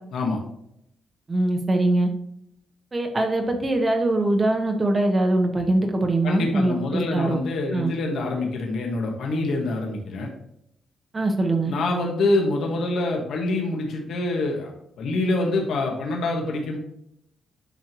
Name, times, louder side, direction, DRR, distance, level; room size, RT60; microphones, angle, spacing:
voice 1, 1.3-2.1 2.9-7.4 7.7-7.9 11.1-11.7, right 2 dB, 20° right, 4 dB, 1.0 m, -22 dB
voice 2, 6.2-10.3 11.7-16.8, left 2 dB, 70° left, 0 dB, 1.6 m, -25 dB
9.9 x 6.1 x 3.0 m, 0.77 s
cardioid pair, 145°, 0 cm